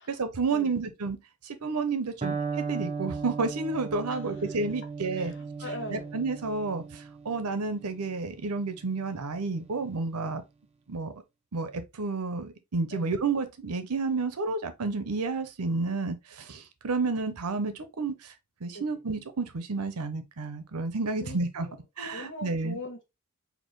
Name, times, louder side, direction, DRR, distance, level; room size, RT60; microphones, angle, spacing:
voice 1, 0.1-1.2 1.4-5.3 5.9-10.4 10.9-11.1 11.5-18.1 18.6-21.7 22.0-22.8, right 3 dB, 90° right, 0.8 m, -31 dB
Electric guitar, 2.2-10.0, right 4 dB, 30° right, 0.7 m, -38 dB
voice 2, 4.1-4.5 5.1-6.1 12.9-13.1 18.7-18.8 21.2-21.8 22.1-23.0, left 1 dB, 55° left, 1.3 m, -41 dB
4.4 x 2.8 x 3.1 m
head